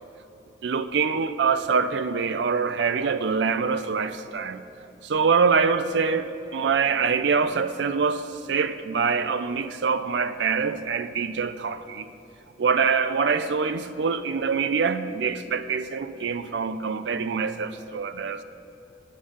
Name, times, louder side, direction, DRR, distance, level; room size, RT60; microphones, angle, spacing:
voice 1, 0.6-4.6 5.0-12.1 12.6-18.4, right 5 dB, 70° right, 0.4 m, -25 dB
8.7 x 7.3 x 6.5 m
head